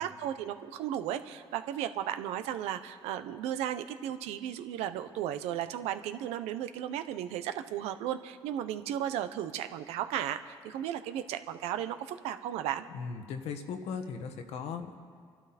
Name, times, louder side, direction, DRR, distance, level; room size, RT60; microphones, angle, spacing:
voice 1, 0.0-12.8, right 11 dB, 90° right, 10 dB, 0.8 m, -35 dB
voice 2, 12.9-15.0, left 6 dB, 80° left, 6 dB, 1.5 m, -38 dB
28.0 x 12.0 x 4.2 m, 2.1 s
cardioid pair, 80°, 11 cm